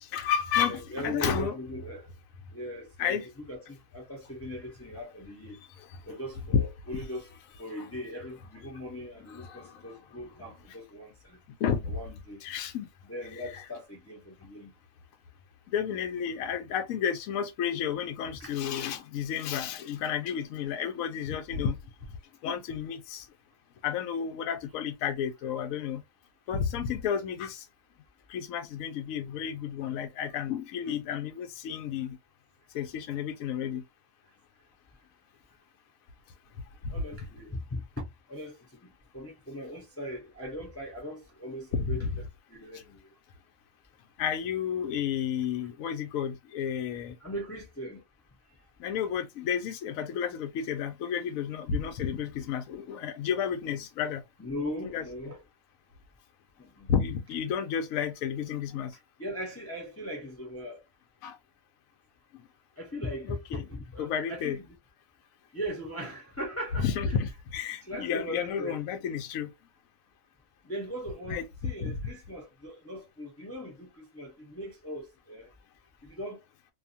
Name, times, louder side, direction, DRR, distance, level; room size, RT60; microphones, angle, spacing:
voice 1, 0.0-1.5 3.0-3.3 5.8-5.9 6.5-6.6 9.3-10.0 11.6-12.0 12.4-12.9 13.3-13.6 15.7-21.8 22.4-23.3 23.8-26.0 26.5-27.6 28.3-32.2 32.7-33.8 36.8-37.0 41.7-42.1 44.2-47.2 48.8-54.2 54.9-55.3 56.9-59.0 61.2-61.4 63.2-63.6 64.0-64.6 66.8-69.5 71.3-71.4 71.8-72.0, left 7 dB, 80° left, 1.0 m, -31 dB
voice 2, 0.6-2.1 2.5-5.6 6.1-11.4 11.9-12.4 13.0-14.7 18.4-18.5 36.9-42.1 42.5-43.1 47.2-48.0 48.5-48.6 54.4-55.4 56.6-56.9 59.2-60.8 62.8-64.8 65.5-67.2 67.8-68.8 70.6-75.5 76.0-76.4, equal, 15° left, 0.6 m, -39 dB
2.6 x 2.2 x 2.6 m
omnidirectional pair, 1.4 m